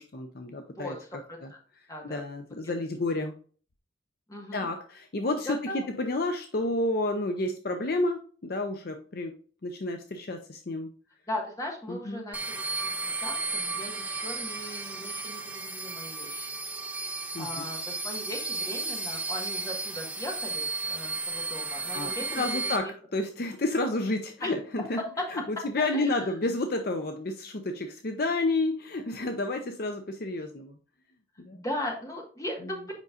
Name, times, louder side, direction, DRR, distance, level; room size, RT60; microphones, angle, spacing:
voice 1, 0.0-1.5 2.0-3.3 4.5-9.3 9.6-10.9 11.9-12.2 17.3-17.6 21.9-25.0 25.3-30.8 31.4-31.6 32.6-32.7, left 2 dB, 50° left, 6 dB, 0.6 m, -30 dB
voice 2, 1.3-1.6 1.9-2.2 2.6-2.7 4.3-4.7 5.5-5.8 11.3-16.5 17.4-22.9 24.4-24.5 25.0-25.5 25.8-26.3 31.5-33.0, left 1 dB, 15° left, 0 dB, 1.4 m, -38 dB
sound 1, 12.3-22.8, right 3 dB, 5° right, 0.5 m, -34 dB
8.1 x 5.3 x 2.5 m, 0.43 s
head